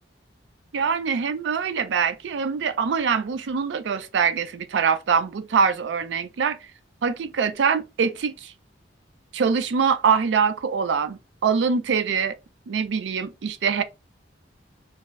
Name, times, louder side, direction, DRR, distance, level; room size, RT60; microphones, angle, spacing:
voice 1, 0.7-6.6 7.0-8.5 9.3-12.4 12.7-13.8, right 6 dB, 75° right, 0.4 m, -24 dB
2.2 x 2.0 x 3.4 m
head